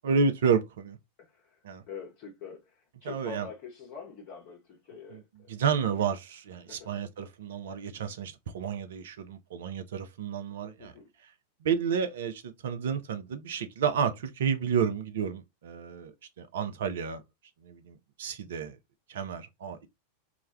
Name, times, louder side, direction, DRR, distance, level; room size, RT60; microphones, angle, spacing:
voice 1, 0.0-1.0 1.6-1.8 3.0-3.5 5.1-5.2 5.5-10.9 11.6-17.2 17.6-18.8 19.1-19.9, right 6 dB, 60° right, 0.4 m, -31 dB
voice 2, 1.2-1.6 1.9-5.5 6.7-6.9 10.8-11.1, left 6 dB, 45° left, 0.7 m, -45 dB
2.3 x 2.1 x 3.3 m
figure-of-eight pair, 90°, 0 cm